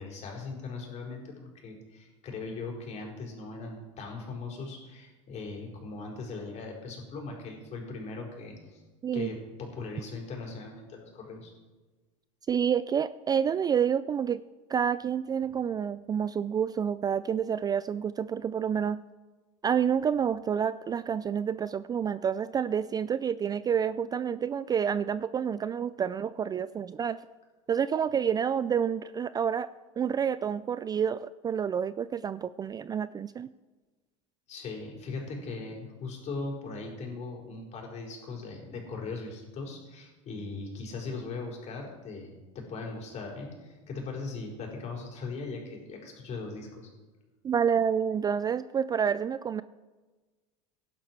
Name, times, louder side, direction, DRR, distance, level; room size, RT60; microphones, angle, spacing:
voice 1, 0.0-8.8 9.1-11.5 34.5-46.9, left 3 dB, 40° left, 0 dB, 4.9 m, -39 dB
voice 2, 12.5-14.4 14.7-19.0 19.6-27.2 27.7-29.7 30.0-33.5 47.4-49.6, right 7 dB, 25° right, 16 dB, 0.4 m, -28 dB
17.0 x 11.0 x 4.7 m, 1.3 s
supercardioid pair, 105°, 17 cm